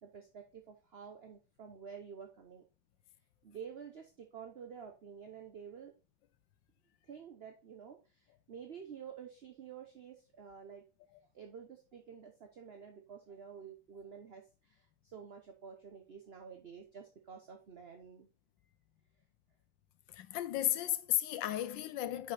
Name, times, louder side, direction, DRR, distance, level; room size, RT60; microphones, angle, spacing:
voice 1, 0.0-2.6 3.4-5.9 7.0-10.8 11.3-18.3, right 7 dB, 50° right, 0.8 m, -50 dB
voice 2, 20.1-22.3, left 13 dB, 80° left, 1.3 m, -34 dB
6.7 x 5.4 x 4.1 m
omnidirectional pair, 2.1 m